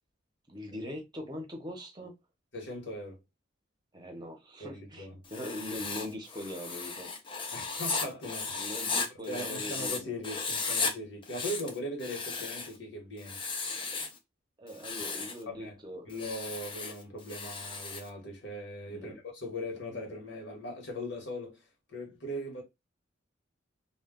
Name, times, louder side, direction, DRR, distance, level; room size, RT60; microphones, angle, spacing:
voice 1, 0.5-2.1 3.9-7.1 8.6-10.1 14.6-16.1 18.9-19.2, left 1 dB, 20° right, 0.7 m, -41 dB
voice 2, 2.5-3.2 4.6-5.2 7.5-8.7 9.3-13.4 15.5-15.8 16.1-21.6 21.9-22.6, left 1 dB, 65° left, 1.1 m, -39 dB
Writing, 5.2-10.0 10.2-10.9 11.2-12.8 13.2-14.2 14.7-15.4 16.1-18.1, left 4 dB, 25° left, 0.4 m, -35 dB
2.2 x 2.2 x 3.6 m
head